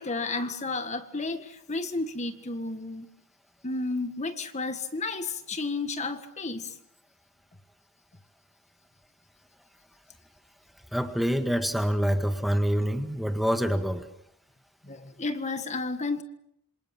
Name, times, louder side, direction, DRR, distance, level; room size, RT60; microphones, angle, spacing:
voice 1, 0.0-3.1 3.6-6.8 14.8-16.2, left 3 dB, 35° left, 8 dB, 1.7 m, -32 dB
voice 2, 10.9-14.1, equal, ahead, 6 dB, 1.8 m, -26 dB
27.5 x 26.5 x 7.4 m, 0.75 s
head